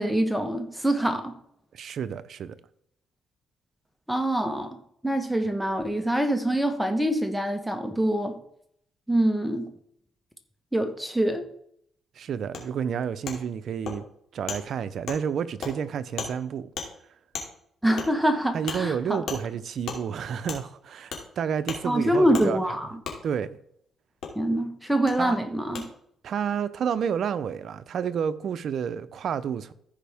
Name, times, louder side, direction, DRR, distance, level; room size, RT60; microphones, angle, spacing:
voice 1, 0.0-1.3 4.1-4.8 5.0-8.4 9.1-9.7 10.7-11.4 17.8-18.9 21.8-22.9 24.3-25.8, right 1 dB, 5° right, 1.2 m, -25 dB
voice 2, 1.7-2.6 12.2-14.1 14.3-16.7 18.5-22.6 23.2-23.6 25.2-25.4 26.2-29.7, right 7 dB, 65° right, 0.6 m, -30 dB
Wood, 12.5-12.6 13.3-13.4 13.9-14.0 14.5-14.6 15.1-15.2 15.6-15.7 16.2-16.3 16.8-16.9 17.3-17.5 18.0-18.1 18.7-18.8 19.3-19.4 19.9-20.0 20.5-20.6 21.1-21.2 21.7-21.8 22.3-22.5 23.0-23.2 24.2-24.3 25.1-25.2 25.7-25.8, left 6 dB, 75° left, 2.6 m, -33 dB
15.0 x 5.1 x 3.5 m
cardioid pair, 90°, 0 cm